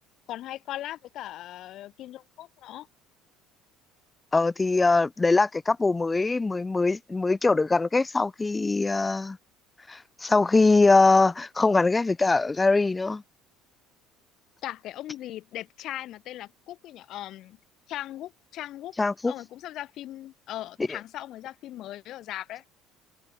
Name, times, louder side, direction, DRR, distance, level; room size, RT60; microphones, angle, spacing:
voice 1, 0.3-2.9 14.6-17.6 17.9-18.9 19.3-22.6, left 14 dB, 55° left, 2.3 m, -38 dB
voice 2, 4.3-9.4 9.9-13.2 19.0-19.3, left 3 dB, 20° left, 0.5 m, -22 dB
hypercardioid pair, 60°, 0 cm